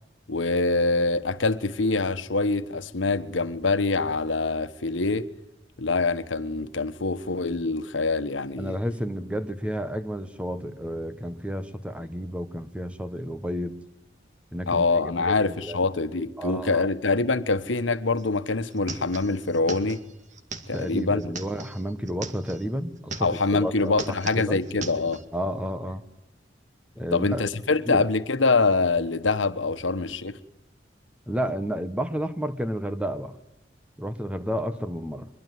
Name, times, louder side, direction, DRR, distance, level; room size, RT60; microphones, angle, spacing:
voice 1, 0.3-5.3 5.8-8.8 14.7-20.0 20.7-21.3 23.2-25.2 27.1-30.4, left 3 dB, 85° left, 1.3 m, -25 dB
voice 2, 8.6-13.8 14.5-15.8 16.4-16.9 20.7-24.6 25.3-26.0 27.0-27.5 27.9-28.0 31.3-33.4 34.0-35.3, equal, 5° right, 1.4 m, -31 dB
sound 1, 18.2-18.3 18.5-22.6 23.0-23.6 23.8-25.2, right 3 dB, 40° right, 2.2 m, -39 dB
24.0 x 22.5 x 9.5 m
head